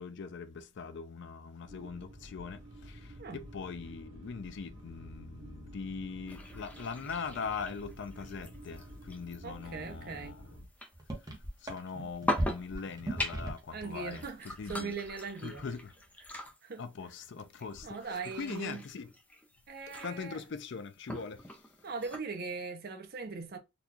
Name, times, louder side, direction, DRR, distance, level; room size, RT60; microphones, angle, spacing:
voice 1, 0.0-3.0 3.3-10.4 11.6-14.9 15.4-15.9 16.8-19.1 20.0-21.4, left 5 dB, 65° left, 0.5 m, -41 dB
sound 1, 1.7-10.6, right 1 dB, 70° right, 1.6 m, -50 dB
sound 2, 6.3-22.2, left 1 dB, 10° left, 0.6 m, -43 dB
voice 2, 9.4-10.3 13.7-15.7 16.6-16.8 17.8-18.8 19.7-20.4 21.8-23.6, right 4 dB, 50° right, 0.6 m, -40 dB
sound 3, 10.6-10.7 10.9-13.8 14.1-15.2 15.4-15.7, right 1 dB, 20° right, 0.9 m, -37 dB
4.0 x 2.3 x 2.8 m
head